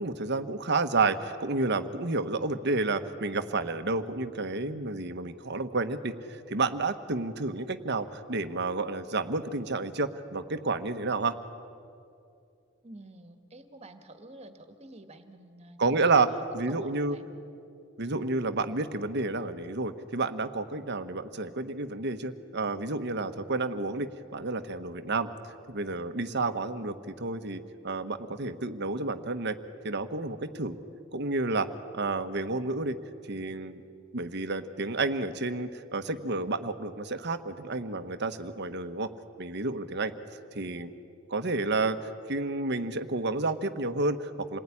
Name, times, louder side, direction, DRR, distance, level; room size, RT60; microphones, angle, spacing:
voice 1, 0.0-11.4 15.8-17.2 18.0-25.3 25.7-29.6 29.8-30.8 31.1-31.7 31.9-33.0 33.3-33.8 34.1-39.1 39.4-40.1 40.5-40.9 41.3-42.0 42.3-44.6, right 3 dB, 60° right, 9 dB, 1.3 m, -30 dB
voice 2, 12.8-16.4 16.7-17.3, right 1 dB, 35° right, 7 dB, 2.1 m, -49 dB
28.5 x 20.0 x 10.0 m, 2.5 s
head